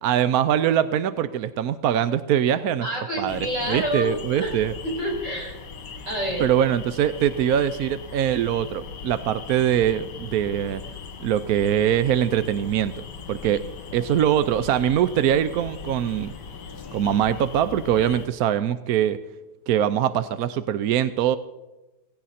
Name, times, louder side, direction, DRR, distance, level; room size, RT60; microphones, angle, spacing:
voice 1, 0.0-2.9 3.2-3.4 3.7-4.7 6.4-10.8 11.2-13.6 13.9-16.3 16.9-19.2 19.7-21.4, right 10 dB, 70° right, 13 dB, 0.9 m, -22 dB
voice 2, 2.8-4.5 4.8-5.7 6.1-6.5, equal, 35° right, -2 dB, 6.5 m, -28 dB
sound 1, 3.3-18.3, left 5 dB, 60° left, 2.2 m, -39 dB
17.5 x 16.5 x 4.2 m, 1.0 s
omnidirectional pair, 2.2 m